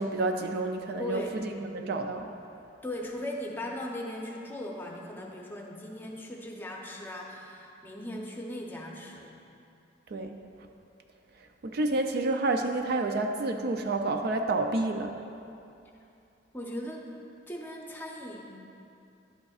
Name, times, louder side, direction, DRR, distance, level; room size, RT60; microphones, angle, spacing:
voice 1, 0.0-2.3 10.1-10.4 11.6-15.2, right 2 dB, 55° right, 5 dB, 0.4 m, -29 dB
voice 2, 1.0-1.4 2.8-9.4 16.5-17.1 17.5-18.5, left 1 dB, 10° left, -1 dB, 0.7 m, -38 dB
11.0 x 7.9 x 2.4 m, 2.7 s
head